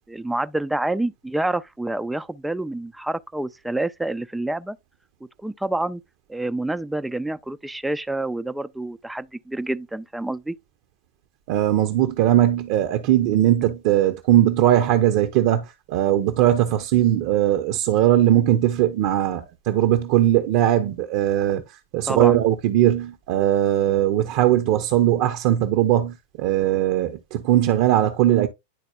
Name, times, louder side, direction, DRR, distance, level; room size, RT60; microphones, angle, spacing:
voice 1, 0.1-4.8 5.4-6.0 6.3-10.6 22.1-22.4, right 2 dB, 5° right, 0.4 m, -27 dB
voice 2, 11.5-21.6 21.9-28.5, right 12 dB, 45° right, 0.7 m, -19 dB
11.0 x 4.1 x 2.3 m
figure-of-eight pair, 90°, 0 cm